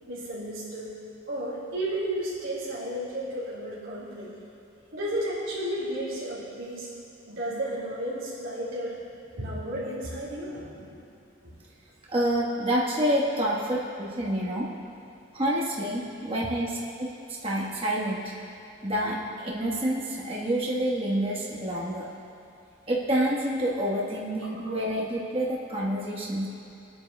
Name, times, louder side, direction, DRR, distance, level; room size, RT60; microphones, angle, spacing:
voice 1, 0.1-0.9 1.3-4.3 4.9-6.9 7.2-9.0 9.3-10.8 11.4-11.5 13.4-13.5, right 1 dB, 70° right, -9 dB, 2.6 m, -33 dB
voice 2, 12.1-14.6 15.3-18.3 18.8-22.1 22.9-26.5, right 1 dB, 25° right, -5 dB, 1.3 m, -28 dB
22.5 x 8.9 x 2.3 m, 2.7 s
head